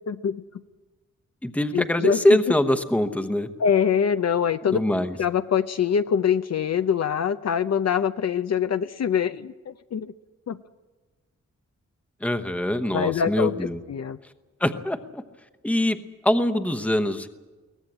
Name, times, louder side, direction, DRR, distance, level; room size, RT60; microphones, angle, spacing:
voice 1, 0.1-0.4 1.7-2.2 3.6-4.8 5.2-10.1 10.5-10.6 12.9-13.5 13.9-14.2, left 7 dB, 60° left, 11 dB, 0.6 m, -24 dB
voice 2, 1.4-3.5 4.7-5.2 12.2-13.8 14.6-15.2 15.6-16.0 16.2-17.3, left 1 dB, 5° left, 9 dB, 0.9 m, -23 dB
22.5 x 18.5 x 8.6 m, 1.3 s
wide cardioid pair, 165°, 30 cm